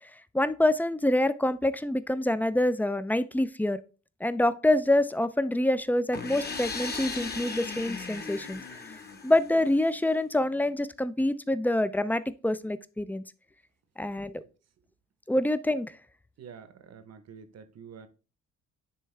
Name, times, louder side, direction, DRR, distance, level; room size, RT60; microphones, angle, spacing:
voice 1, 0.3-3.8 4.2-8.6 9.2-13.2 14.0-14.4 15.3-15.9, left 1 dB, 5° left, 0.4 m, -26 dB
sound 1, 6.1-9.9, left 4 dB, 35° left, 1.1 m, -37 dB
voice 2, 16.4-18.1, right 7 dB, 55° right, 1.0 m, -48 dB
9.9 x 3.4 x 3.2 m
cardioid pair, 90°, 30 cm